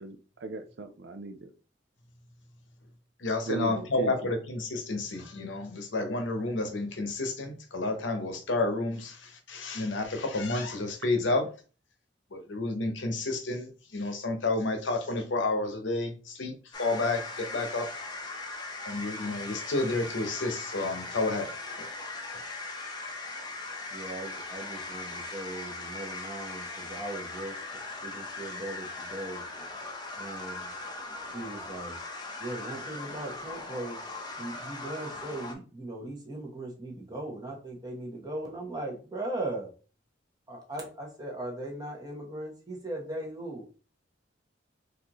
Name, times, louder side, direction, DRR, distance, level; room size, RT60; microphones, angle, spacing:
voice 1, 0.0-1.5 3.5-4.3, right 3 dB, 65° right, 0.5 m, -38 dB
voice 2, 3.2-11.5 12.3-17.9 18.8-21.5 21.8-21.9, left 2 dB, 75° left, 0.8 m, -30 dB
sound 1, 16.7-35.5, left 3 dB, 25° left, 0.6 m, -39 dB
voice 3, 23.9-27.5 28.0-29.4 30.2-30.7 31.3-32.0 32.4-34.0 34.4-39.7 40.5-43.8, right 1 dB, 20° right, 1.0 m, -38 dB
4.2 x 2.6 x 3.0 m
head